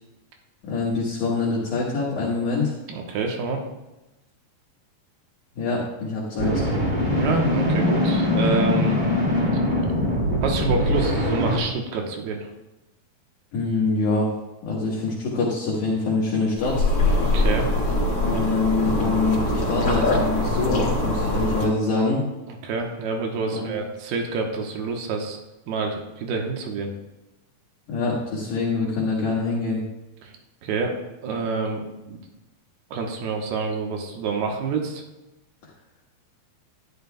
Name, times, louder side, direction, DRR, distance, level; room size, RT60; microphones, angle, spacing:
voice 1, 0.7-2.7 5.5-6.6 13.5-14.3 14.6-16.9 18.2-22.2 23.5-23.8 27.9-29.8, left 3 dB, 60° left, -6 dB, 2.8 m, -24 dB
voice 2, 2.9-3.6 7.2-9.0 10.4-12.5 17.3-17.7 22.5-25.4 25.7-26.9 30.2-30.3 30.6-30.9 31.2-32.2 32.9-35.0, right 4 dB, 85° right, 2 dB, 3.1 m, -27 dB
sound 1, 6.4-11.6, left 1 dB, 25° right, 1.0 m, -22 dB
sound 2, 16.6-21.7, left 2 dB, 40° left, 1.2 m, -23 dB
12.0 x 11.0 x 2.3 m, 1.0 s
omnidirectional pair, 4.4 m